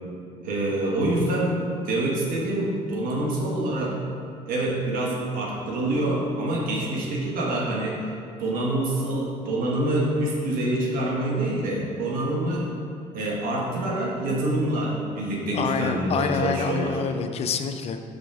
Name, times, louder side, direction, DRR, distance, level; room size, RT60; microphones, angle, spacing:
voice 1, 0.4-1.6 1.8-4.0 4.5-8.0 8.4-12.7 13.1-17.0, right 1 dB, 70° right, -2 dB, 1.3 m, -26 dB
voice 2, 15.5-18.0, left 6 dB, 45° left, 7 dB, 0.4 m, -27 dB
6.2 x 5.1 x 3.5 m, 2.4 s
cardioid pair, 105°, 15 cm